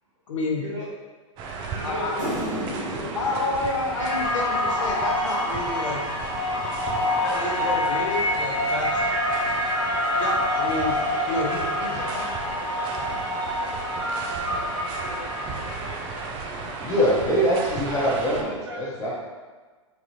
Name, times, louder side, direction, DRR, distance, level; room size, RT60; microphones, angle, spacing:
voice 1, 0.3-0.7 1.8-2.1 3.1-6.0 7.2-9.1 10.2-11.0 11.3-12.2, left 2 dB, 70° left, -1 dB, 0.7 m, -29 dB
sound 1, 1.4-18.4, right 4 dB, 30° right, 0.4 m, -35 dB
voice 2, 1.5-2.4 2.7-3.5 11.3-15.3 15.5-17.1 17.7-19.1, right 1 dB, 55° right, -7 dB, 1.2 m, -39 dB
sound 2, 2.2-4.9 6.3-8.4, equal, 75° right, 1.1 m, -36 dB
sound 3, 4.0-16.3, left 1 dB, 40° left, 1.0 m, -27 dB
voice 3, 16.8-19.1, equal, 15° left, -6 dB, 0.9 m, -23 dB
3.2 x 2.3 x 2.9 m, 1.4 s
hypercardioid pair, 110°, 17 cm